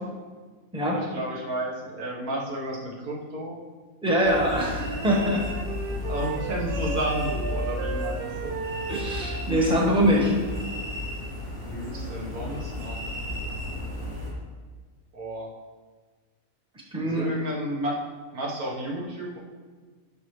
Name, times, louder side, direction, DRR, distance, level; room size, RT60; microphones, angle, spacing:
voice 1, 0.9-3.6 6.0-8.5 11.7-13.0 15.1-15.5 17.0-18.0 18.3-19.4, right 1 dB, 85° right, -3 dB, 1.9 m, -32 dB
voice 2, 4.0-5.4 8.9-10.4 16.9-17.3, equal, 5° right, -3 dB, 1.2 m, -23 dB
sound 1, 4.2-14.3, left 1 dB, 55° right, 2.6 m, -33 dB
Wind instrument woodwind instrument, 4.7-10.4, right 5 dB, 70° right, 0.5 m, -35 dB
10.5 x 6.1 x 3.2 m, 1.4 s
omnidirectional pair, 1.5 m